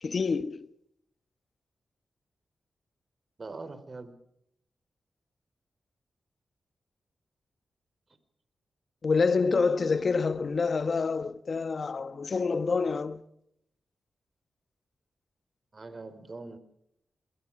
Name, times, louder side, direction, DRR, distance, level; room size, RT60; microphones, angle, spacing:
voice 1, 0.0-0.7 9.0-13.2, left 4 dB, 55° left, 1.4 m, -27 dB
voice 2, 3.4-4.1 15.7-16.6, right 3 dB, 40° right, 4.7 m, -42 dB
28.0 x 23.5 x 5.0 m
cardioid pair, 65°, 0 cm